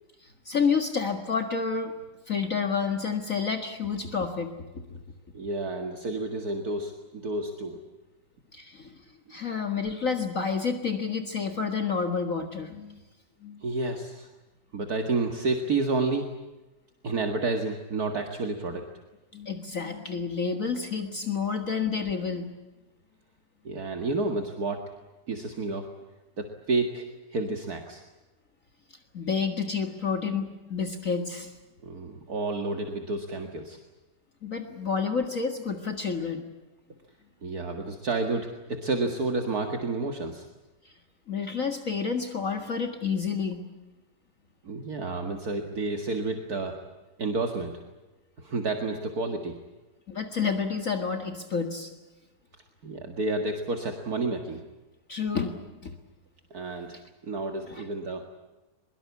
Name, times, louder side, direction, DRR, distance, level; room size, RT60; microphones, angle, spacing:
voice 1, 0.2-1.9 2.3-4.5 8.5-8.9 9.3-13.0 13.4-13.6 19.3-22.5 29.1-31.5 34.4-36.4 41.3-43.6 50.1-51.9 55.1-55.6 55.8-55.9 57.7-57.8, left 5 dB, 45° left, 5 dB, 2.2 m, -29 dB
voice 2, 5.3-7.8 13.6-14.3 14.7-16.3 17.0-18.8 23.6-24.8 25.3-25.9 26.4-28.0 31.8-33.8 37.4-40.5 44.6-46.8 47.2-47.8 48.4-49.6 52.8-54.6 56.5-57.0 57.2-58.3, right 3 dB, 55° right, 4 dB, 2.4 m, -30 dB
23.5 x 22.5 x 8.4 m, 1.1 s
omnidirectional pair, 1.9 m